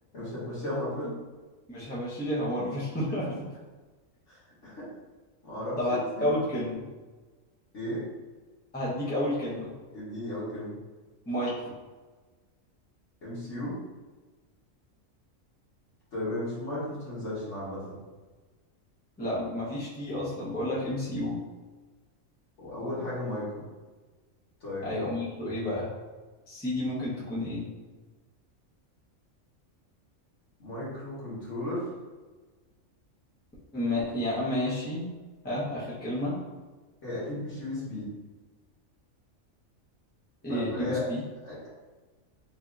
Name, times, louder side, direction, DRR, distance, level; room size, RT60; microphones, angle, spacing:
voice 1, 0.1-1.1 4.3-4.8 5.4-6.4 7.7-8.0 9.9-10.7 13.2-13.8 16.1-18.0 22.6-23.7 24.6-24.9 30.6-31.8 37.0-38.0 40.5-41.0 41.4-41.7, left 1 dB, 60° left, -9 dB, 1.8 m, -35 dB
voice 2, 1.7-3.2 5.8-6.9 8.7-9.7 11.3-11.7 19.2-21.4 24.8-25.9 26.5-27.7 33.7-35.1 35.4-36.4 40.4-41.2, left 1 dB, 10° left, -7 dB, 0.6 m, -30 dB
4.2 x 2.7 x 2.4 m, 1.3 s
omnidirectional pair, 1.4 m